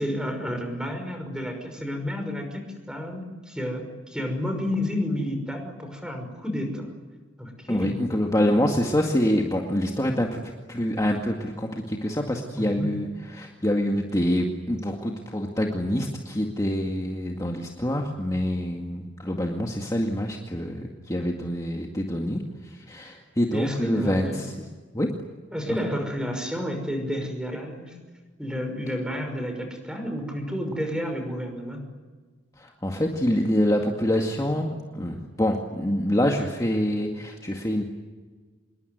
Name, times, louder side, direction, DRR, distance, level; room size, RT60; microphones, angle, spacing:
voice 1, 0.0-6.9 7.4-8.0 12.5-12.9 23.5-24.4 25.5-27.9 28.4-31.8, equal, 5° right, 5 dB, 5.8 m, -30 dB
voice 2, 7.7-10.4 10.7-24.5 24.9-25.1 25.7-25.9 32.6-37.8, equal, 20° left, 1 dB, 2.1 m, -26 dB
27.0 x 22.5 x 9.5 m, 1.4 s
head